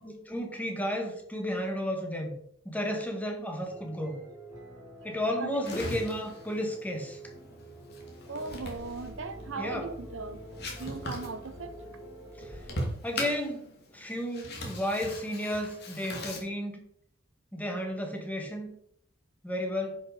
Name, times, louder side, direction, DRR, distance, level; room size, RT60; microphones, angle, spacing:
voice 1, 0.0-2.4 2.7-4.2 5.0-7.2 9.6-9.9 12.4-12.6 13.0-16.8 17.5-18.8 19.4-20.0, equal, 10° left, 1.8 m, -33 dB
sound 1, 3.6-12.7, right 1 dB, 15° right, 4.3 m, -47 dB
sound 2, 5.6-16.4, left 1 dB, 55° left, 2.7 m, -41 dB
voice 2, 8.3-10.4 10.8-11.9, right 4 dB, 85° right, 0.9 m, -38 dB
10.5 x 6.4 x 4.9 m
head